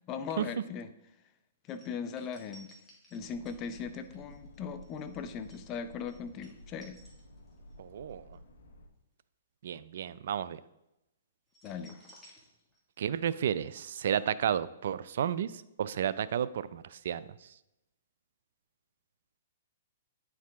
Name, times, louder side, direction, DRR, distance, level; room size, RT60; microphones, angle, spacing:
voice 1, 0.1-0.9 1.7-2.7 3.1-7.0 11.6-12.0, left 6 dB, 30° left, 10 dB, 0.6 m, -39 dB
sound 1, 1.7-7.8 8.1-8.3 11.5-13.0 13.3-13.4, equal, 5° left, 1.8 m, -59 dB
sound 2, 3.2-8.9, equal, 70° left, 1.2 m, -53 dB
voice 2, 7.8-8.2 9.6-10.6 13.0-15.5 15.8-17.2, right 9 dB, 65° right, 16 dB, 0.3 m, -32 dB
9.4 x 4.7 x 3.5 m, 0.90 s
hypercardioid pair, 135°, 0 cm